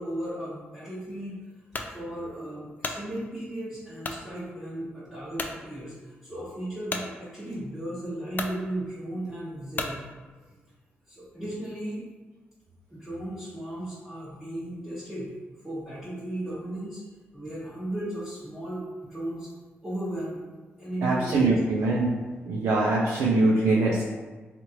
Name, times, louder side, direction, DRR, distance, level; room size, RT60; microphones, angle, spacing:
voice 1, 0.0-1.3 1.9-10.0 11.1-12.1 12.9-15.3 15.6-17.0 17.3-19.5 19.8-20.4 20.8-21.6, right 1 dB, 10° right, -10 dB, 1.0 m, -35 dB
sound 1, 1.7-1.9 2.5-3.0 4.0-4.2 4.8-4.9 5.3-5.6 6.9-7.1 7.9-8.0 8.3-8.6 9.7-10.0, left 3 dB, 40° left, 0.3 m, -33 dB
voice 2, 21.0-22.1 22.4-24.0, right 2 dB, 90° right, -4 dB, 0.4 m, -23 dB
3.0 x 2.4 x 2.8 m, 1.3 s
cardioid pair, 70°, 4 cm